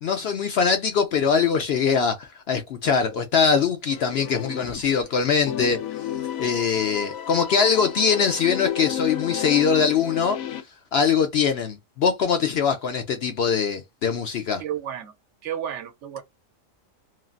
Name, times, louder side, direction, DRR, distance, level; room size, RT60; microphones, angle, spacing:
voice 1, 0.0-5.8 6.4-10.4 10.9-14.6, left 6 dB, 65° left, 0.7 m, -22 dB
sound 1, 3.9-5.1 5.5-10.6, left 10 dB, 85° left, 1.0 m, -32 dB
voice 2, 14.6-15.1 15.4-16.2, right 10 dB, 65° right, 0.9 m, -32 dB
3.1 x 2.4 x 2.4 m
omnidirectional pair, 1.4 m